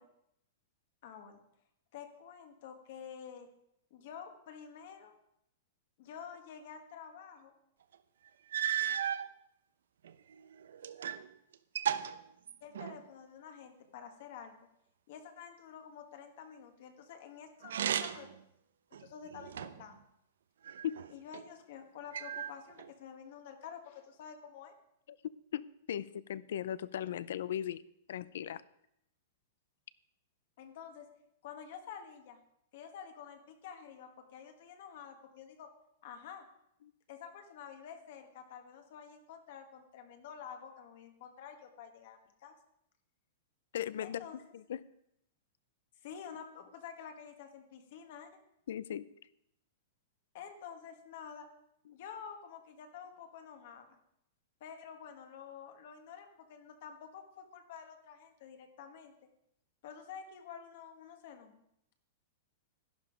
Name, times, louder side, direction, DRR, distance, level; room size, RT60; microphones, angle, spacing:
voice 1, 1.0-1.4 1.9-3.5 3.9-5.1 6.0-7.5 12.6-14.5 15.1-18.3 19.0-20.0 21.1-24.7 30.6-31.1 31.4-32.4 32.7-35.7 36.0-36.4 37.1-42.5 44.0-44.4 46.0-48.3 50.3-51.5 51.9-54.0 54.6-59.1 59.8-61.6, left 7 dB, 40° left, 6 dB, 1.4 m, -49 dB
sound 1, 7.9-8.0 8.5-9.3 10.0-11.3 11.5-13.1 17.6-18.4 18.9-19.9 20.6-21.4 22.1-22.9, right 9 dB, 85° right, 0.8 m, -36 dB
voice 2, 25.5-27.8 28.1-28.6 43.7-44.2 44.5-44.8 48.7-49.1, left 10 dB, 60° left, 19 dB, 0.5 m, -37 dB
12.0 x 11.5 x 5.1 m, 0.78 s
supercardioid pair, 180°, 0 cm